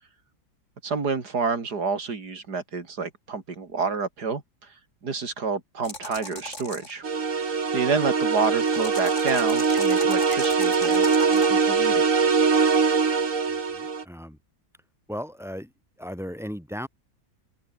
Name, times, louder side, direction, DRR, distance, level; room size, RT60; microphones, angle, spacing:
voice 1, 0.8-4.4 5.0-7.0 7.7-12.0, right 4 dB, 75° right, 3.4 m, -29 dB
sound 1, 5.8-6.9 8.6-11.5, left 2 dB, 45° left, 5.3 m, -38 dB
sound 2, 7.0-14.0, right 5 dB, 50° right, 2.3 m, -22 dB
voice 2, 13.7-14.4 15.1-15.7 16.0-16.9, equal, ahead, 2.8 m, -36 dB
omnidirectional pair, 1.7 m